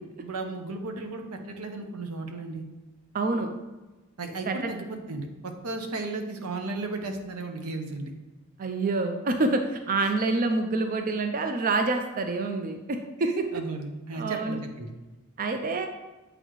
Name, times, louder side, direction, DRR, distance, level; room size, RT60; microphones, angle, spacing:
voice 1, 0.2-2.6 4.2-8.1 10.0-10.1 13.5-14.9, right 3 dB, 90° right, 5 dB, 0.8 m, -35 dB
voice 2, 3.1-3.5 4.5-4.7 8.6-13.5 14.1-14.6 15.4-15.9, right 3 dB, 40° right, 6 dB, 0.4 m, -27 dB
7.8 x 4.1 x 3.1 m, 1.1 s
head